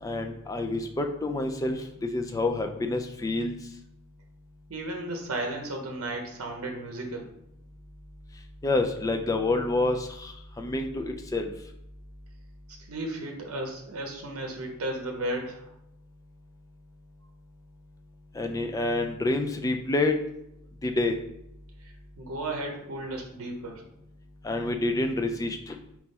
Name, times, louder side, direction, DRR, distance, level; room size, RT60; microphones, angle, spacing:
voice 1, 0.0-3.5 8.6-11.5 18.3-20.2 20.8-21.2 24.4-25.8, left 2 dB, 15° left, 4 dB, 0.3 m, -28 dB
voice 2, 4.7-7.3 12.9-15.7 21.8-23.8, right 1 dB, 70° right, 2 dB, 0.7 m, -34 dB
4.1 x 3.0 x 3.6 m, 0.79 s
head